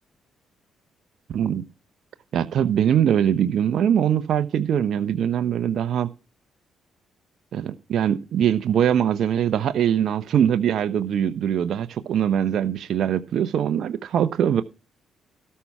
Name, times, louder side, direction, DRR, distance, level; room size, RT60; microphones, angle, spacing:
voice 1, 1.3-1.6 2.3-6.1 7.5-14.6, right 9 dB, 65° right, 0.8 m, -22 dB
13.0 x 5.5 x 5.8 m
supercardioid pair, 65°, 0 cm